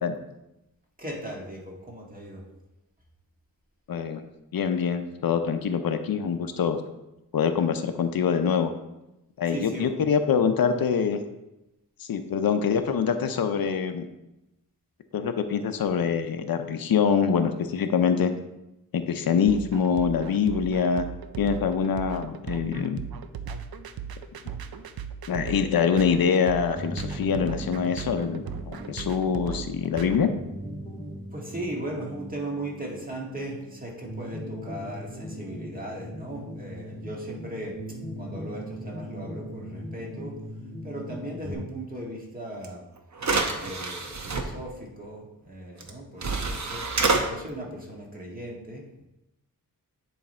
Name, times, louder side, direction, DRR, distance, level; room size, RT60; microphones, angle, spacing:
voice 1, 1.0-2.5 9.5-10.0 31.3-37.8 38.1-40.4 40.8-42.8 43.6-46.9 47.2-48.9, right 1 dB, 25° right, -2 dB, 1.7 m, -37 dB
voice 2, 3.9-4.2 4.5-6.8 7.3-8.7 9.4-11.2 12.1-14.0 15.1-18.3 18.9-21.0 21.4-23.0 25.3-30.3, left 6 dB, 80° left, 8 dB, 0.6 m, -24 dB
sound 1, 19.5-30.2, right 7 dB, 85° right, 0.5 m, -37 dB
sound 2, 26.8-41.5, equal, 10° left, 1.6 m, -39 dB
sound 3, 42.6-42.7 43.2-44.4 45.8-45.9 46.2-47.2, right 3 dB, 50° right, 0.9 m, -26 dB
9.7 x 3.3 x 4.3 m, 0.93 s
wide cardioid pair, 95°, 35 cm